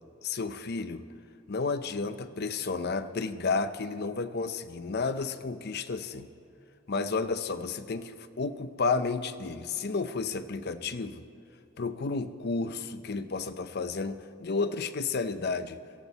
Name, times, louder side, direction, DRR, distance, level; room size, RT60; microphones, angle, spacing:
voice 1, 0.2-1.0 1.5-6.3 6.9-11.2 11.8-15.8, left 4 dB, 50° left, 11 dB, 0.6 m, -32 dB
18.0 x 13.5 x 4.1 m, 2.7 s
head